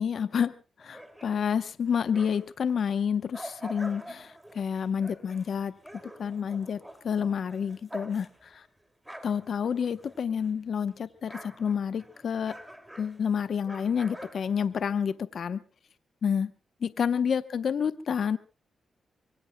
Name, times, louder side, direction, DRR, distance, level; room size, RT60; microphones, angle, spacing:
voice 1, 0.0-5.8 6.2-8.7 9.2-12.6 13.0-15.6 16.2-16.5 16.8-18.4, left 7 dB, 65° left, 12 dB, 0.8 m, -29 dB
sound 1, 0.8-2.6 3.0-10.6 10.9-15.1, right 1 dB, 5° right, 2.5 m, -47 dB
25.0 x 23.0 x 2.2 m, 0.33 s
cardioid pair, 90°, 0 cm